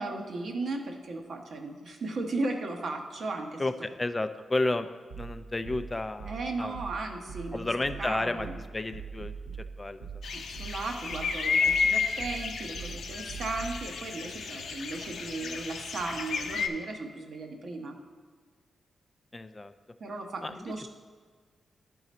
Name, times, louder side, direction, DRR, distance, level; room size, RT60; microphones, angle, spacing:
voice 1, 0.0-3.6 6.3-7.7 8.0-8.5 10.3-18.0 20.0-20.9, right 3 dB, 65° right, 3 dB, 0.9 m, -36 dB
voice 2, 4.0-4.9 5.2-6.8 7.5-8.5 8.7-10.2 19.3-19.7 20.4-20.5, left 2 dB, 20° left, 10 dB, 0.3 m, -32 dB
sound 1, 5.1-13.8, right 6 dB, 85° right, 2.1 m, -42 dB
sound 2, 10.2-16.7, left 5 dB, 85° left, 0.5 m, -31 dB
11.0 x 3.9 x 4.1 m, 1.5 s
cardioid pair, 95°, 0 cm